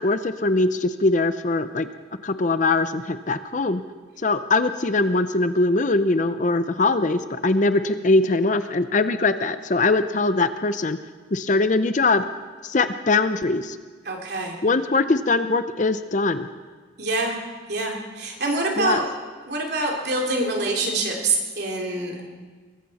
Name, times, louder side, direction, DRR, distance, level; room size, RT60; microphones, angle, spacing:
voice 1, 0.0-1.9 2.2-3.8 4.2-11.0 11.3-12.2 12.6-13.8 14.6-16.5 18.8-19.0, left 3 dB, 40° left, 11 dB, 0.6 m, -21 dB
voice 2, 14.0-14.6 17.0-17.4 17.7-19.1 19.5-22.2, right 2 dB, 55° right, 0 dB, 3.1 m, -25 dB
23.0 x 14.5 x 4.2 m, 1.5 s
head